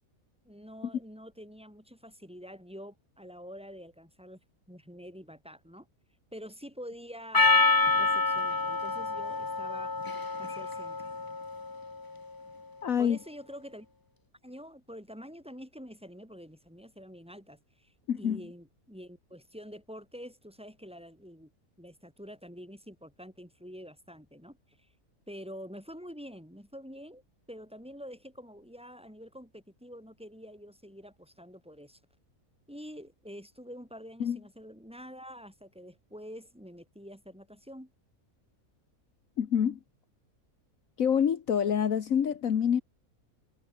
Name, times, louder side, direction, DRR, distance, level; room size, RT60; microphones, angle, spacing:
voice 1, 0.4-4.4 4.7-5.9 6.3-7.7 7.9-10.0 10.4-11.0 13.0-13.9 14.4-21.5 21.8-24.9 25.3-27.2 27.5-32.0 32.7-37.9, equal, 5° right, 6.6 m, -47 dB
Percussion, 7.3-11.9, left 3 dB, 20° left, 0.6 m, -27 dB
voice 2, 12.8-13.2 18.1-18.4 34.2-34.4 39.4-39.8 41.0-42.8, left 8 dB, 70° left, 1.6 m, -26 dB
omnidirectional pair, 1.5 m